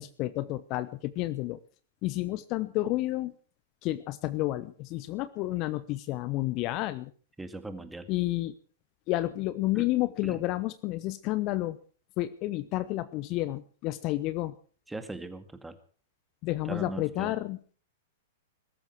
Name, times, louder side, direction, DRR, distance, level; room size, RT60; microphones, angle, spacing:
voice 1, 0.0-1.6 2.0-3.3 3.8-7.1 8.1-8.5 9.1-11.8 12.2-14.5 16.4-17.7, left 17 dB, 40° left, 16 dB, 0.9 m, -30 dB
voice 2, 7.4-8.1 9.7-9.9 10.2-10.4 14.9-15.8 16.6-17.3, right 2 dB, 5° right, 10 dB, 2.1 m, -39 dB
21.5 x 13.5 x 4.6 m, 0.41 s
figure-of-eight pair, 100°, 0 cm